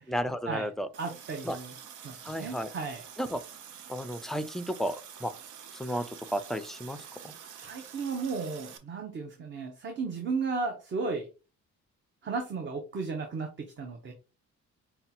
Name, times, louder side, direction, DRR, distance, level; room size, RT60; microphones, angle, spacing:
voice 1, 0.1-0.9 1.4-1.6 2.2-2.7 3.2-3.4 3.9-5.3 5.7-7.0 7.2-7.3, equal, ahead, 0.4 m, -33 dB
Water tap faucet, 0.9-8.8, right 8 dB, 80° right, 0.7 m, -47 dB
voice 2, 1.0-1.7 2.0-3.0 5.8-6.0 7.6-11.3 12.2-14.1, right 4 dB, 40° right, 0.8 m, -34 dB
5.5 x 2.3 x 2.8 m
cardioid pair, 90°, 30 cm